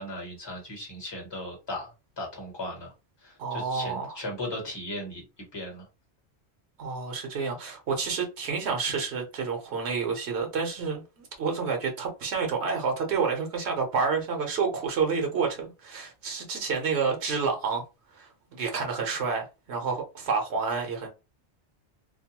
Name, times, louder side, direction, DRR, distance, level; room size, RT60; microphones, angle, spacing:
voice 1, 0.0-1.9 2.2-2.9 3.2-5.2 5.5-5.9 16.7-16.8, left 1 dB, 25° left, 1.1 m, -37 dB
voice 2, 3.4-4.1 6.8-17.8 18.2-21.1, right 5 dB, 85° right, 1.1 m, -29 dB
2.6 x 2.1 x 2.9 m
omnidirectional pair, 1.1 m